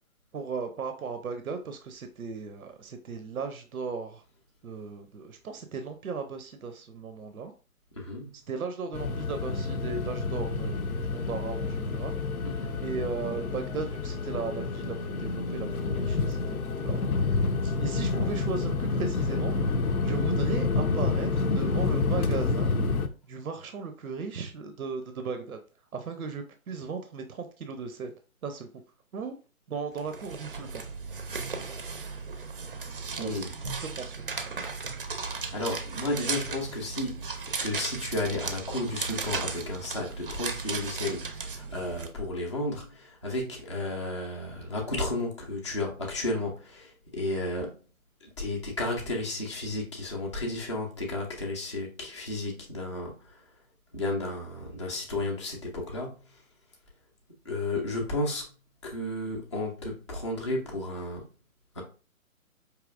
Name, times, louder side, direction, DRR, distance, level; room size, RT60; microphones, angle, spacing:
voice 1, 0.3-4.2 4.6-7.5 8.3-12.2 12.6-19.5 20.0-22.7 23.3-25.6 25.9-28.1 28.4-28.7 29.1-29.3 29.7-30.8 33.2-33.4 33.9-34.3, right 5 dB, 75° right, 0.7 m, -36 dB
voice 2, 8.0-8.3 12.4-12.7 20.0-20.3 33.2-33.5 35.5-37.3 37.6-47.8 48.2-53.4 53.9-56.1 57.4-58.5 58.8-61.2 61.8-61.9, left 2 dB, 20° left, 0.5 m, -33 dB
sound 1, 8.9-23.1, left 3 dB, 85° left, 0.6 m, -28 dB
sound 2, 30.0-42.1, right 4 dB, 40° right, 0.5 m, -36 dB
4.8 x 2.8 x 2.5 m
figure-of-eight pair, 145°, 43 cm